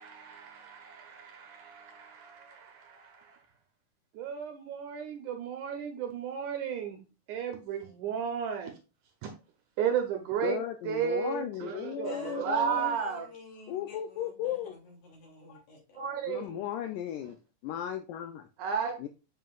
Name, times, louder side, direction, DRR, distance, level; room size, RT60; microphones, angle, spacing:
voice 1, 0.0-3.4 4.1-7.0 7.3-8.7 9.2-9.3 9.8-10.6 10.8-13.3 16.0-16.6 18.6-18.9, right 7 dB, 75° right, 2.0 m, -34 dB
voice 2, 10.4-13.0 13.7-14.7 15.5-15.6 16.3-17.4 17.6-18.5 19.0-19.1, left 10 dB, 80° left, 2.0 m, -36 dB
voice 3, 12.0-16.0 16.4-16.5, left 3 dB, 65° left, 4.2 m, -49 dB
7.5 x 5.5 x 2.4 m
omnidirectional pair, 4.1 m